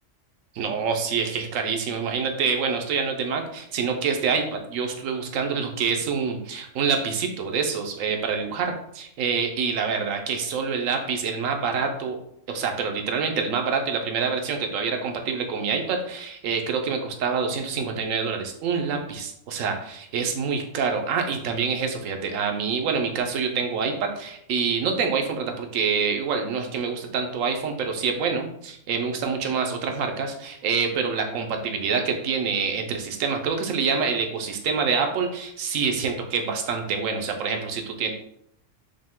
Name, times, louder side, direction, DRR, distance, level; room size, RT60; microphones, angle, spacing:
voice 1, 0.5-12.2 12.5-38.1, right 5 dB, 90° right, 4 dB, 1.0 m, -26 dB
5.2 x 2.1 x 3.6 m, 0.73 s
omnidirectional pair, 1.3 m